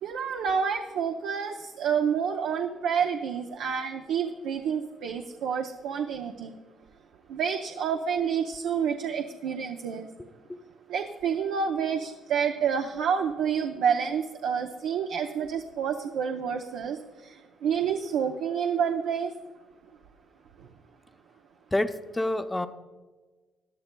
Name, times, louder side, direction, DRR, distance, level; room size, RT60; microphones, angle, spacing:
voice 1, 0.0-6.6 7.3-10.1 10.9-19.3, right 7 dB, 80° right, 4 dB, 0.6 m, -29 dB
voice 2, 21.7-22.7, left 1 dB, 15° left, 9 dB, 0.7 m, -28 dB
17.5 x 11.0 x 2.2 m, 1.3 s
supercardioid pair, 75°, 0 cm